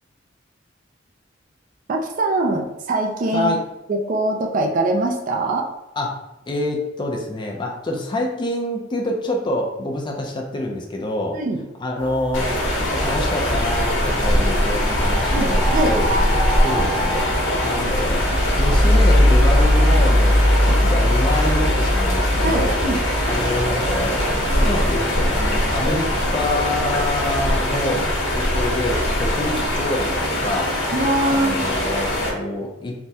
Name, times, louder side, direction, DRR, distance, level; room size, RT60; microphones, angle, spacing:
voice 1, 1.9-3.5 3.9-5.7 11.3-11.6 15.3-15.9 22.4-23.0 30.9-31.8, right 2 dB, 45° right, 1 dB, 0.4 m, -22 dB
voice 2, 6.5-11.4 11.8-12.5 12.8-16.1 16.6-17.2 17.6-20.4 20.6-22.8 23.3-28.1 28.3-30.7 31.3-32.9, left 1 dB, 25° left, 1 dB, 0.4 m, -26 dB
sound 1, 12.0-21.5, right 1 dB, 60° right, 0.9 m, -31 dB
sound 2, 12.3-32.3, left 1 dB, 70° left, 1.0 m, -22 dB
sound 3, 17.8-27.0, left 1 dB, 90° right, 1.2 m, -20 dB
3.4 x 2.1 x 2.7 m, 0.91 s
head